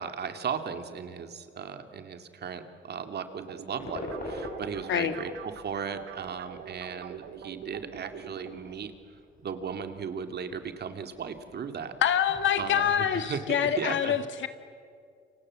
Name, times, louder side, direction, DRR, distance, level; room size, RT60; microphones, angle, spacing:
voice 1, 0.0-8.9 9.4-11.9 12.6-14.2, right 6 dB, 55° right, 8 dB, 2.4 m, -36 dB
sound 1, 3.4-8.5, right 8 dB, 75° right, 2.1 m, -44 dB
sound 2, 3.8-13.7, left 1 dB, 45° left, 6.6 m, -46 dB
voice 2, 12.0-14.5, left 9 dB, 70° left, 9 dB, 2.1 m, -26 dB
29.0 x 25.0 x 7.5 m, 2.3 s
cardioid pair, 90°, 20 cm